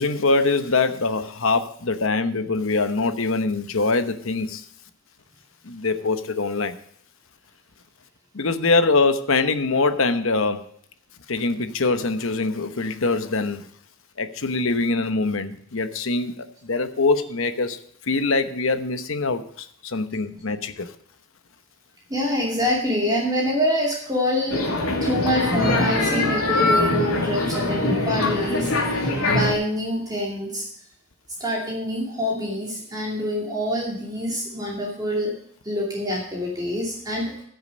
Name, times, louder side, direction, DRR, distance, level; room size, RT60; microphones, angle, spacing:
voice 1, 0.0-4.6 5.6-6.7 8.3-10.6 11.3-13.7 14.2-17.8 18.1-20.9, left 3 dB, 65° left, 10 dB, 1.0 m, -23 dB
voice 2, 22.1-24.6 25.0-30.6 31.4-35.3 35.6-37.4, left 1 dB, 20° right, -3 dB, 2.5 m, -26 dB
sound 1, 24.5-29.5, left 2 dB, 85° left, 2.8 m, -22 dB
15.0 x 6.8 x 5.2 m, 0.66 s
head